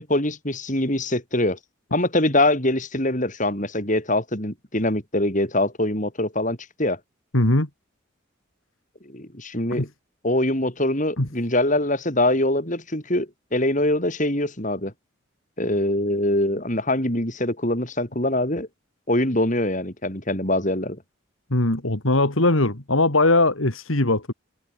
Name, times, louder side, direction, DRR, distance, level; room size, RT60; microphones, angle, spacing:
voice 1, 0.0-1.6 1.9-7.0 9.1-9.9 10.2-14.9 15.6-18.7 19.1-21.0, left 1 dB, 40° left, 7.0 m, -23 dB
voice 2, 7.3-7.7 9.7-9.9 11.2-11.3 21.5-24.3, left 2 dB, 80° left, 3.0 m, -20 dB
head